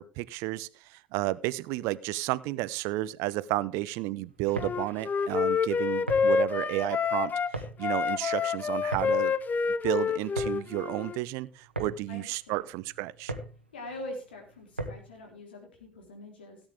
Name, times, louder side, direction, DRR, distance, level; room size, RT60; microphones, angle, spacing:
voice 1, 0.0-7.3 7.8-9.3 9.8-13.3, right 17 dB, 60° right, 19 dB, 0.6 m, -32 dB
sound 1, 4.3-15.2, right 2 dB, 90° right, 1.3 m, -41 dB
Wind instrument woodwind instrument, 4.6-7.5 7.8-11.2, left 6 dB, 30° left, 0.6 m, -28 dB
voice 2, 12.1-12.7 13.7-16.6, left 1 dB, 75° left, 3 dB, 3.7 m, -43 dB
17.0 x 8.9 x 3.5 m, 0.34 s
figure-of-eight pair, 60°, 6 cm